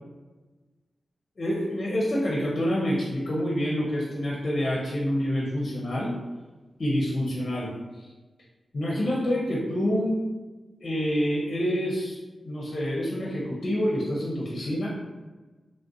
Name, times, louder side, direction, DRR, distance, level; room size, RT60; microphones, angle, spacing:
voice 1, 1.4-6.2 6.8-7.7 8.7-10.2 10.8-12.2 12.4-14.9, equal, 50° left, -5 dB, 0.6 m, -27 dB
3.2 x 2.4 x 2.7 m, 1.2 s
wide cardioid pair, 105°, 0 cm